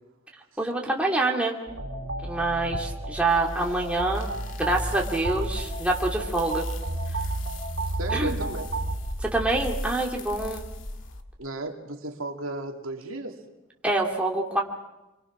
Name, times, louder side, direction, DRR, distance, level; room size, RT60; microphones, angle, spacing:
voice 1, 0.6-1.6 2.2-4.3 4.6-6.6 8.1-8.4 9.2-10.6 13.8-14.6, right 2 dB, 5° right, -1 dB, 2.7 m, -26 dB
sound 1, 1.7-9.0, right 2 dB, 70° right, 3.0 m, -31 dB
sound 2, 3.3-11.2, left 1 dB, 65° left, 2.0 m, -39 dB
voice 2, 8.0-8.7 11.4-13.4, right 2 dB, 85° right, 3 dB, 2.4 m, -34 dB
27.5 x 23.0 x 6.1 m, 0.99 s
head